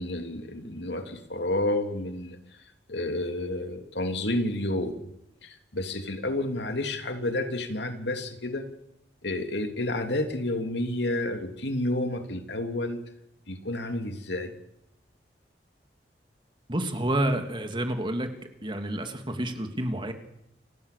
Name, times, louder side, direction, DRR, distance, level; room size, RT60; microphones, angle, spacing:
voice 1, 0.0-2.4 2.9-5.1 5.4-8.7 9.2-13.0 13.5-14.6, left 1 dB, 75° left, 3.0 m, -30 dB
voice 2, 16.7-18.3 18.6-20.1, right 1 dB, 30° right, 3.0 m, -29 dB
29.5 x 26.0 x 6.9 m
head